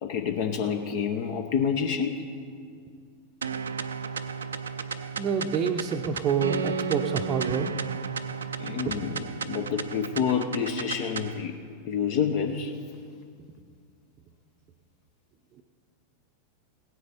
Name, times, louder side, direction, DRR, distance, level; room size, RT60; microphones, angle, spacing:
voice 1, 0.0-2.3 8.6-11.6 11.9-12.7, left 7 dB, 50° left, 6 dB, 0.7 m, -28 dB
sound 1, 3.4-11.4, right 6 dB, 70° right, 0.5 m, -33 dB
voice 2, 5.2-7.8 8.9-9.0, right 7 dB, 30° right, 0 dB, 0.6 m, -27 dB
17.0 x 9.4 x 4.3 m, 2.2 s
figure-of-eight pair, 90°, 0 cm